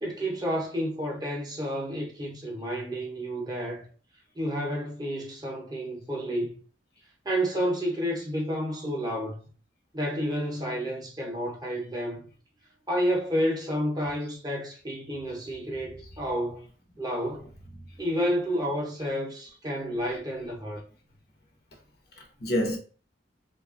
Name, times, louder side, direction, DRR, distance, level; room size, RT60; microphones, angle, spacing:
voice 1, 0.0-3.9 4.4-6.6 7.2-9.5 9.9-12.3 12.9-16.6 17.0-17.5 18.0-20.8, equal, 20° right, 0.6 m, -30 dB
voice 2, 17.3-18.1 19.0-19.1 19.4-19.6 20.0-20.5 22.1-22.8, equal, 55° left, 0.7 m, -34 dB
2.8 x 2.3 x 2.4 m
head